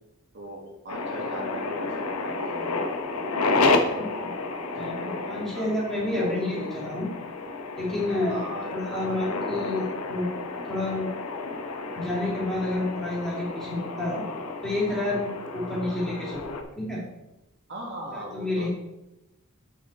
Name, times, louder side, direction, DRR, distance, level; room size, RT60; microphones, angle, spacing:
voice 1, 0.3-2.9 3.6-4.0 5.0-5.7 6.1-6.7 8.3-9.2 15.9-16.0 17.7-18.7, equal, 55° right, -1 dB, 1.6 m, -38 dB
sound 1, 0.9-16.6, left 3 dB, 85° left, 0.9 m, -31 dB
voice 2, 4.0-4.3 4.7-7.1 7.8-10.3 10.7-11.2 11.9-14.3 14.6-17.0 18.1-18.7, left 2 dB, ahead, -6 dB, 2.5 m, -30 dB
8.2 x 5.7 x 4.4 m, 0.95 s
head